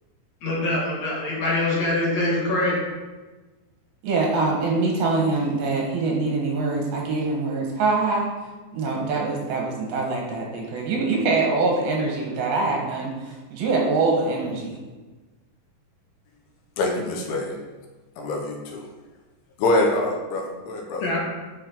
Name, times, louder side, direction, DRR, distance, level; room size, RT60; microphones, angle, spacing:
voice 1, 0.4-2.8 21.0-21.2, left 2 dB, 55° left, -5 dB, 2.5 m, -24 dB
voice 2, 4.0-8.3 8.7-14.8, right 3 dB, 75° right, -1 dB, 3.2 m, -24 dB
voice 3, 16.8-17.6 18.2-18.9 19.6-21.1, left 2 dB, 80° left, 1 dB, 3.1 m, -25 dB
7.7 x 6.6 x 3.9 m, 1.2 s
omnidirectional pair, 4.5 m